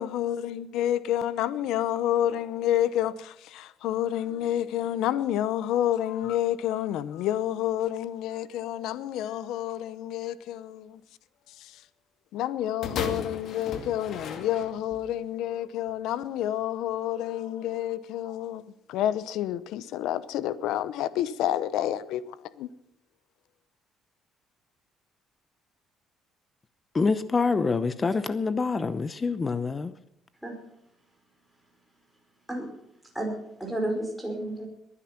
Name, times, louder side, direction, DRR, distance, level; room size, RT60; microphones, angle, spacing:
voice 1, 0.0-11.0 11.6-11.8 12.3-22.7, left 11 dB, 85° left, 0.8 m, -29 dB
sound 1, 12.8-15.1 15.9-16.0, left 5 dB, 55° left, 2.3 m, -36 dB
voice 2, 26.9-29.9, left 4 dB, 25° left, 0.8 m, -26 dB
voice 3, 33.1-34.7, right 1 dB, 5° right, 4.9 m, -32 dB
21.5 x 9.9 x 5.9 m
cardioid pair, 130°, 0 cm